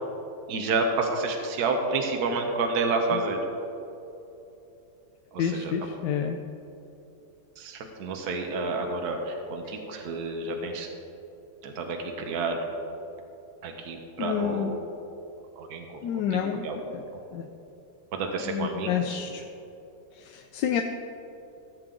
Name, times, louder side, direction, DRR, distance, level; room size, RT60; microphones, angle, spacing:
voice 1, 0.5-3.4 5.3-5.7 7.6-10.9 11.6-12.6 13.6-14.7 15.6-16.8 18.1-19.2, right 3 dB, 65° right, 3 dB, 1.4 m, -30 dB
voice 2, 5.4-6.4 9.6-9.8 13.8-13.9 14.2-14.8 16.0-17.0 17.3-17.5 18.5-19.5 20.1-20.8, left 8 dB, 85° left, 5 dB, 1.2 m, -29 dB
15.5 x 7.3 x 3.8 m, 3.0 s
omnidirectional pair, 1.8 m